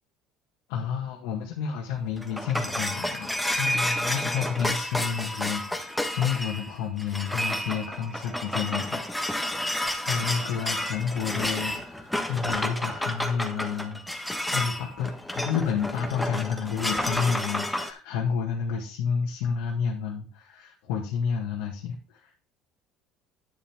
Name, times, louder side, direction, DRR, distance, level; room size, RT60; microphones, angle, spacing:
voice 1, 0.7-9.4 10.0-22.4, left 7 dB, 85° left, -1 dB, 1.9 m, -30 dB
sound 1, 1.9-17.9, left 1 dB, 5° left, 1.3 m, -30 dB
9.9 x 7.5 x 3.6 m, 0.38 s
cardioid pair, 120°, 0 cm